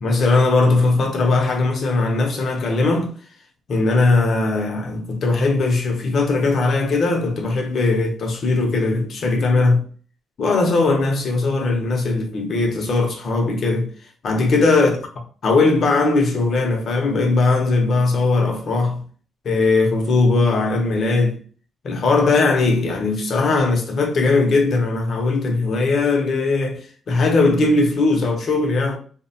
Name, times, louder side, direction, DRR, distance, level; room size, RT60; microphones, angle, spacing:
voice 1, 0.0-3.1 3.7-9.8 10.4-13.9 14.2-15.0 15.4-19.0 19.4-21.4 21.8-29.0, left 3 dB, 45° left, 0.6 m, -19 dB
2.7 x 2.1 x 2.6 m
cardioid pair, 140°, 0 cm